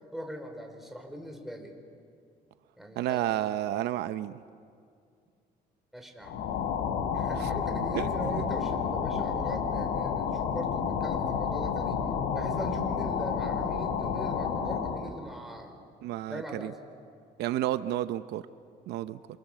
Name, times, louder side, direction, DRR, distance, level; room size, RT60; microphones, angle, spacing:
voice 1, 0.1-1.8 2.8-3.3 5.9-6.3 7.1-12.0 12.3-15.8 16.3-16.8, equal, ahead, 3 dB, 5.0 m, -40 dB
voice 2, 3.0-4.4 7.4-7.5 7.9-8.4 16.0-16.7 17.4-18.4 18.9-19.2, right 13 dB, 80° right, 12 dB, 0.7 m, -31 dB
sound 1, 6.2-15.1, left 7 dB, 85° left, 3.4 m, -30 dB
28.0 x 27.5 x 7.5 m, 2.3 s
cardioid pair, 110°, 17 cm